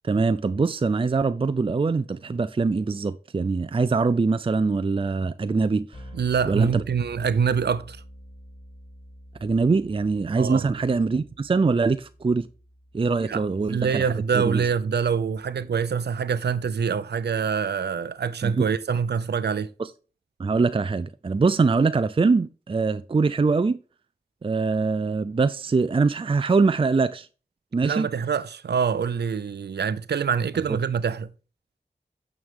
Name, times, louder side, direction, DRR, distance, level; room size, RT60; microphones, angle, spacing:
voice 1, 0.0-5.9 6.5-6.8 9.4-12.5 12.9-14.6 18.4-18.6 19.8-19.9 20.4-23.8 24.4-27.3 27.7-28.1, right 4 dB, 35° right, 0.4 m, -23 dB
sound 1, 5.9-16.0, equal, 30° left, 5.5 m, -48 dB
voice 2, 6.1-8.0 10.4-10.7 13.2-19.7 27.8-31.3, right 6 dB, 90° right, 0.5 m, -25 dB
9.2 x 6.4 x 3.7 m
cardioid pair, 50°, 17 cm